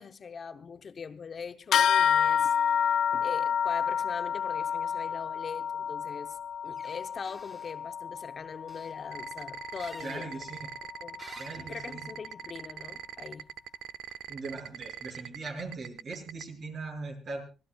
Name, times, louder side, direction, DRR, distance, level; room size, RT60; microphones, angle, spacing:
voice 1, 0.0-6.4 6.6-10.3 11.0-11.2 11.7-13.5, left 6 dB, 45° left, 0.8 m, -42 dB
sound 1, 1.7-11.5, left 8 dB, 70° left, 0.8 m, -30 dB
sound 2, 6.7-7.0 7.2-7.7 8.7-8.9 9.8-10.2 11.2-11.7, right 2 dB, 30° right, 3.4 m, -51 dB
sound 3, 9.1-16.4, right 10 dB, 80° right, 0.6 m, -41 dB
voice 2, 10.0-10.6 11.4-12.1 14.3-17.4, right 3 dB, 50° right, 6.2 m, -40 dB
24.5 x 16.0 x 2.3 m
cardioid pair, 90°, 0 cm